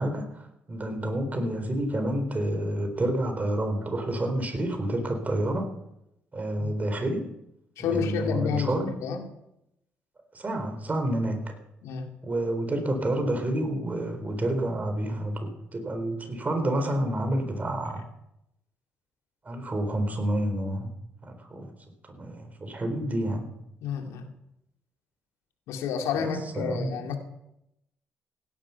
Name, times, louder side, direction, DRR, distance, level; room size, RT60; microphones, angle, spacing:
voice 1, 0.0-5.7 6.3-7.3 7.9-9.0 10.3-11.5 12.2-18.0 19.4-20.9 21.2-21.7 22.0-23.5 26.1-26.9, right 1 dB, 30° right, 6 dB, 4.1 m, -29 dB
voice 2, 7.8-9.2 11.8-12.1 23.8-24.3 25.7-27.2, left 7 dB, 75° left, 4 dB, 2.3 m, -30 dB
16.5 x 11.0 x 5.8 m, 0.85 s
hypercardioid pair, 50°, 5 cm